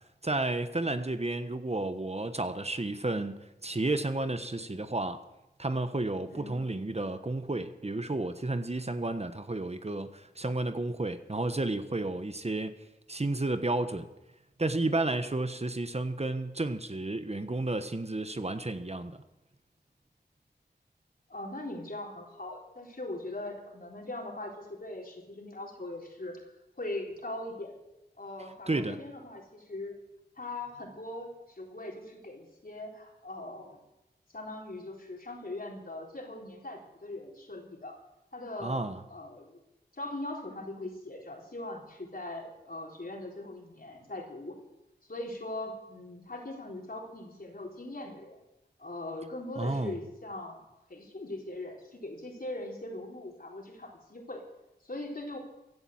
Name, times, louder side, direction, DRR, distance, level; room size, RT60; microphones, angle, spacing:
voice 1, 0.2-5.2 5.6-12.7 13.1-14.1 14.6-19.2 28.7-29.0 38.6-39.0 49.6-50.0, right 2 dB, 35° right, 10 dB, 1.2 m, -32 dB
voice 2, 21.3-26.4 26.8-27.7 28.2-29.9 30.4-33.8 34.3-38.0 38.3-39.6 39.9-44.6 45.1-48.4 48.8-50.6 50.9-54.4 54.8-55.4, left 2 dB, 55° left, 0 dB, 4.0 m, -40 dB
16.0 x 10.0 x 7.8 m, 0.94 s
cardioid pair, 45°, 18 cm